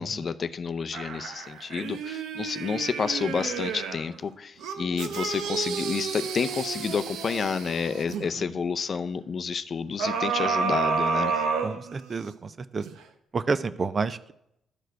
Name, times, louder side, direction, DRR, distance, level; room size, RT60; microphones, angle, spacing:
voice 1, 0.0-11.3, left 6 dB, 45° left, 11 dB, 0.5 m, -30 dB
sound 1, 0.9-4.1 4.6-8.3 10.0-12.3 12.8-12.9, right 5 dB, 85° right, 0.7 m, -30 dB
voice 2, 11.6-12.9 13.3-14.3, right 4 dB, 40° right, 14 dB, 0.4 m, -30 dB
12.0 x 4.7 x 4.6 m, 0.79 s
cardioid pair, 90°, 0 cm